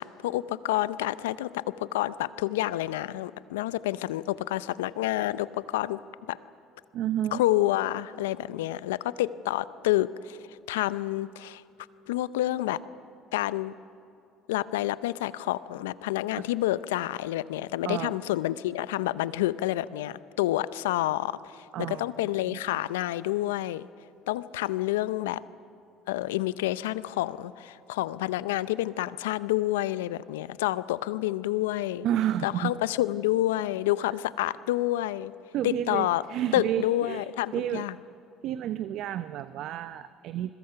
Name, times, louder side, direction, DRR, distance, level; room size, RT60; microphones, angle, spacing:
voice 1, 0.0-6.0 6.3-6.4 7.3-10.4 10.7-11.6 12.1-12.8 13.3-13.7 14.5-23.9 24.3-25.4 26.1-32.1 32.4-35.3 35.6-36.2 36.5-37.9, left 15 dB, 85° left, 17 dB, 0.6 m, -28 dB
voice 2, 6.9-7.4 17.8-18.2 21.7-22.1 22.5-22.6 32.0-32.7 35.5-37.3 37.5-37.9 38.4-40.5, right 11 dB, 65° right, 12 dB, 0.7 m, -30 dB
29.0 x 21.5 x 5.8 m, 2.6 s
hypercardioid pair, 70°, 0 cm